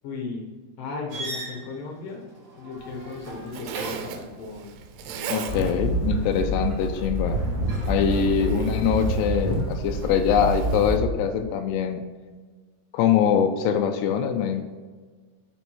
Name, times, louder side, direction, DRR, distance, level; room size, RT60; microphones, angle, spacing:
voice 1, 0.0-0.5 0.8-2.3 2.5-4.7 5.0-5.5 8.1-8.5, left 4 dB, 65° left, -1 dB, 2.3 m, -36 dB
sound 1, 1.1-4.3 7.3-7.9, right 1 dB, 45° right, 2.3 m, -39 dB
Zipper (clothing), 2.8-11.0, right 8 dB, 90° right, 3.2 m, -39 dB
voice 2, 5.3-7.4 7.9-12.0 12.9-14.6, left 8 dB, 85° left, 5 dB, 2.4 m, -23 dB
sound 2, 5.5-11.0, right 1 dB, 25° right, 1.0 m, -27 dB
6.8 x 6.1 x 4.5 m, 1.4 s
omnidirectional pair, 5.5 m